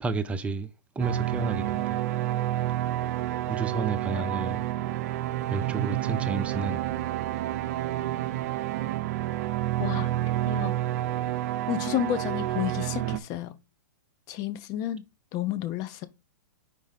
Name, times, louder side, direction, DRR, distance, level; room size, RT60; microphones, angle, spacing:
voice 1, 0.0-2.0 3.5-4.7 5.5-6.9, right 3 dB, 10° right, 0.6 m, -31 dB
sound 1, 1.0-13.2, right 14 dB, 50° right, 0.5 m, -29 dB
voice 2, 9.8-10.1 10.5-10.7 11.7-13.5 14.3-15.0 15.3-16.1, left 11 dB, 35° left, 0.8 m, -31 dB
5.4 x 3.5 x 5.1 m
hypercardioid pair, 130°, 10 cm